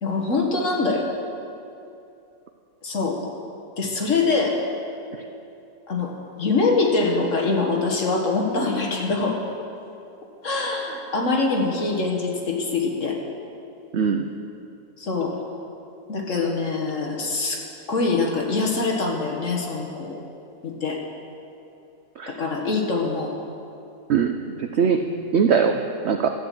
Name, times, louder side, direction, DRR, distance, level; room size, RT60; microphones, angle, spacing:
voice 1, 0.0-1.0 2.8-3.2 3.8-4.5 5.9-6.1 6.4-9.4 10.4-13.2 15.0-15.3 16.1-17.6 17.9-20.2 20.6-21.0 22.3-23.3 25.0-25.2, left 3 dB, 45° left, 0 dB, 1.6 m, -24 dB
voice 2, 13.9-14.3 22.2-22.3 24.1-25.0 25.3-26.4, right 6 dB, 90° right, 6 dB, 0.5 m, -21 dB
12.5 x 8.7 x 7.6 m, 2.7 s
omnidirectional pair, 1.9 m